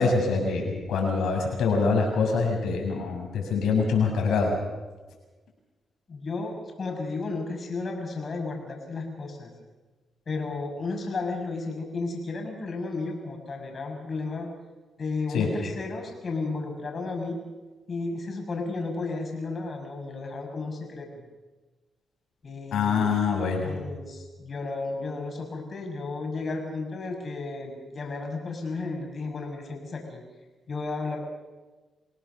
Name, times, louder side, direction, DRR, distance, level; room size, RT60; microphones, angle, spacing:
voice 1, 0.0-4.5 15.3-15.5 22.7-23.7, left 4 dB, 85° left, 1 dB, 7.0 m, -24 dB
voice 2, 6.1-9.5 10.3-14.5 15.0-17.4 17.9-21.2 22.4-23.2 23.6-30.2 30.7-31.2, left 3 dB, 45° left, 2 dB, 5.9 m, -33 dB
27.0 x 18.0 x 6.8 m, 1.3 s
cardioid pair, 85°, 0 cm